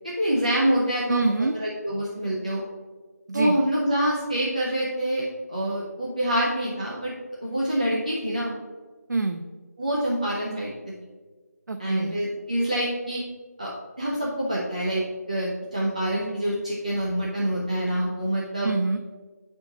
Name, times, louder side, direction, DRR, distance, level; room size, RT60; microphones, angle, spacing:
voice 1, 0.0-1.2 1.5-2.6 3.3-7.1 7.4-8.5 9.8-10.7 11.8-13.2 13.6-13.7 14.0-18.7, right 1 dB, 25° right, -5 dB, 0.6 m, -26 dB
voice 2, 1.1-1.6 3.3-3.6 9.1-9.4 11.7-12.2 18.6-19.0, right 3 dB, 85° right, 6 dB, 0.5 m, -25 dB
7.8 x 4.5 x 3.9 m, 1.4 s
figure-of-eight pair, 180°, 9 cm